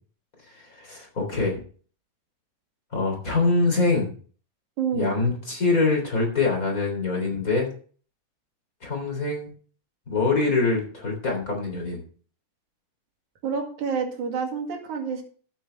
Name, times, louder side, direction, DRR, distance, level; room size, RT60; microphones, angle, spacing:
voice 1, 0.5-1.6 2.9-4.1 4.9-7.7 8.8-9.5 10.1-12.0, left 3 dB, 25° left, 1 dB, 3.8 m, -24 dB
voice 2, 4.8-5.1 13.4-15.2, right 6 dB, 65° right, 2 dB, 3.6 m, -28 dB
13.5 x 8.9 x 3.4 m, 0.42 s
omnidirectional pair, 3.8 m